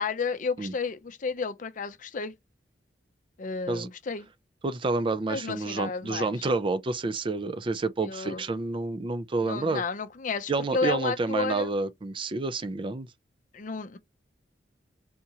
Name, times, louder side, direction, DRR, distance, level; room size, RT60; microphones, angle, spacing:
voice 1, 0.0-2.3 3.4-4.3 5.3-6.3 8.0-8.4 9.4-11.7 13.5-14.0, left 4 dB, 50° left, 0.5 m, -32 dB
voice 2, 4.6-9.8 10.5-13.1, right 3 dB, 30° right, 0.4 m, -29 dB
3.5 x 2.8 x 2.8 m
head